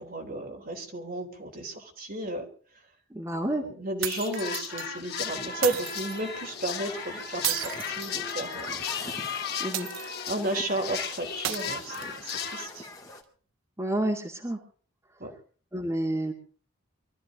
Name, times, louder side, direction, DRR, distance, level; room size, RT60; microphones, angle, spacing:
voice 1, 0.0-2.5 3.6-8.9 10.3-12.9 15.2-15.3, right 1 dB, 45° right, 3 dB, 3.5 m, -33 dB
voice 2, 3.1-3.6 9.6-9.9 13.8-14.6 15.7-16.3, right 1 dB, 15° right, 0 dB, 2.3 m, -29 dB
sound 1, 4.0-12.7, left 6 dB, 50° left, 2.1 m, -36 dB
sound 2, 4.0-4.9 5.6-6.2 7.4-8.7 9.7-10.4 11.4-12.4, right 12 dB, 70° right, 0.7 m, -34 dB
Human group actions, 5.5-13.2, left 2 dB, 15° left, 2.7 m, -44 dB
24.0 x 14.0 x 3.8 m, 0.42 s
head